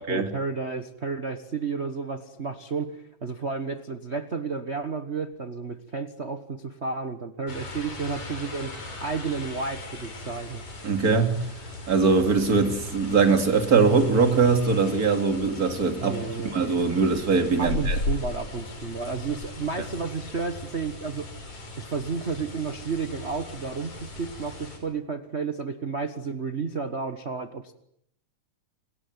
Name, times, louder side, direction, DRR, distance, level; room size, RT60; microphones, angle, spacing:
voice 1, 0.0-8.7 9.0-10.6 16.0-16.5 17.6-21.3 21.8-27.7, right 4 dB, 70° right, 0.6 m, -32 dB
sound 1, 7.5-24.8, left 2 dB, 60° left, 6.6 m, -37 dB
voice 2, 10.8-11.4 11.9-16.2 16.5-18.0, right 4 dB, 30° right, 3.0 m, -21 dB
29.5 x 20.0 x 9.7 m
omnidirectional pair, 3.6 m